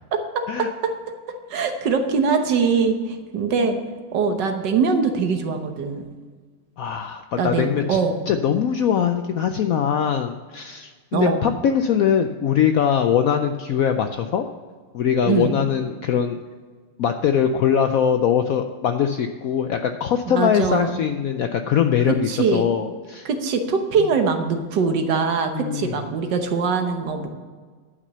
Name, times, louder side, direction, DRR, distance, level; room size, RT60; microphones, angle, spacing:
voice 1, 0.3-0.9 1.5-3.8 4.1-6.0 7.4-8.1 11.1-11.5 15.2-15.5 20.3-21.0 22.1-22.7 23.2-27.3, right 5 dB, 70° right, 6 dB, 1.6 m, -22 dB
voice 2, 6.8-8.0 8.3-14.5 14.9-16.4 17.0-23.3 25.5-25.9, left 8 dB, 75° left, 7 dB, 0.8 m, -22 dB
11.0 x 6.0 x 6.7 m, 1.5 s
omnidirectional pair, 2.0 m